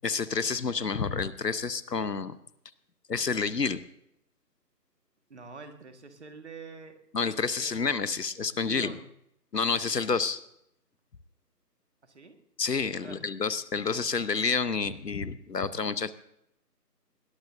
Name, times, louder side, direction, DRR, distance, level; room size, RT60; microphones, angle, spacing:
voice 1, 0.0-2.4 3.1-3.8 7.1-8.9 9.5-10.4 12.6-16.1, left 5 dB, 75° left, 15 dB, 1.1 m, -29 dB
voice 2, 5.3-7.0 7.6-8.1 8.5-9.1 12.0-12.4 13.0-13.3, right 4 dB, 45° right, 6 dB, 1.8 m, -46 dB
21.0 x 19.0 x 2.7 m, 0.76 s
figure-of-eight pair, 155°, 49 cm